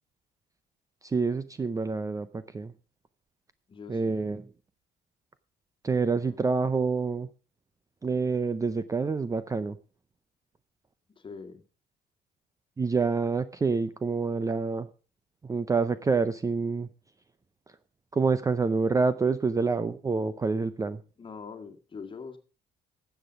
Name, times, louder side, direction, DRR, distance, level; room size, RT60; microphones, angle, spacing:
voice 1, 1.0-2.7 3.9-4.5 5.8-7.3 8.0-9.8 12.8-14.9 15.4-16.9 17.7-17.8 18.1-21.0, right 4 dB, 20° right, 0.6 m, -27 dB
voice 2, 3.7-4.4 6.3-6.4 11.2-11.6 21.2-22.4, left 5 dB, 30° left, 1.9 m, -43 dB
12.5 x 8.0 x 5.2 m
cardioid pair, 110°, 17 cm